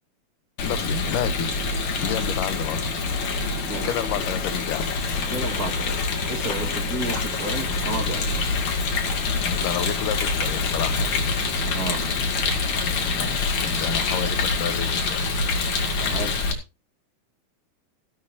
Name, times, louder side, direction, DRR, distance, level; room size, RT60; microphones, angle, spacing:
voice 1, 0.6-2.9 3.8-4.9 9.5-11.2 13.2-15.4, left 12 dB, 85° left, 2.5 m, -31 dB
Rain, 0.6-16.5, left 4 dB, 65° left, 3.6 m, -25 dB
voice 2, 5.3-6.0 6.3-8.3 11.7-12.0 16.0-16.4, right 2 dB, 35° right, 2.1 m, -31 dB
15.5 x 12.0 x 2.7 m
omnidirectional pair, 3.7 m